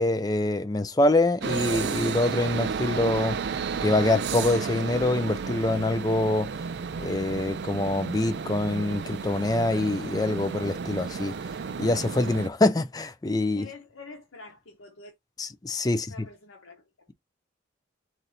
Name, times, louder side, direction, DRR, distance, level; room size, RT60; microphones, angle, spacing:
voice 1, 0.0-3.4 3.8-6.5 7.0-11.3 11.8-13.6 15.4-16.1, left 2 dB, 20° left, 0.4 m, -25 dB
sound 1, 1.4-12.5, right 5 dB, 55° right, 0.3 m, -32 dB
voice 2, 13.5-15.1 15.9-17.1, left 3 dB, 85° left, 1.0 m, -47 dB
4.2 x 2.6 x 4.1 m
head